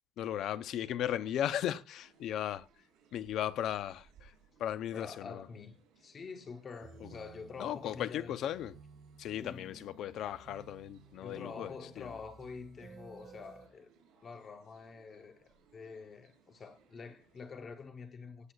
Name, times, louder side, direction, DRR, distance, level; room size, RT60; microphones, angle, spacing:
voice 1, 0.2-2.7 3.1-4.3 4.6-5.5 7.0-7.1 7.6-8.8 9.2-12.1, left 11 dB, 55° left, 0.6 m, -36 dB
sound 1, 2.0-17.6, right 5 dB, 75° right, 6.8 m, -67 dB
voice 2, 4.9-8.5 9.4-9.7 11.2-13.9 14.2-18.5, left 5 dB, 30° left, 0.9 m, -47 dB
sound 2, 6.8-13.7, right 5 dB, 45° right, 1.8 m, -56 dB
18.0 x 8.1 x 2.4 m
cardioid pair, 160°, 0 cm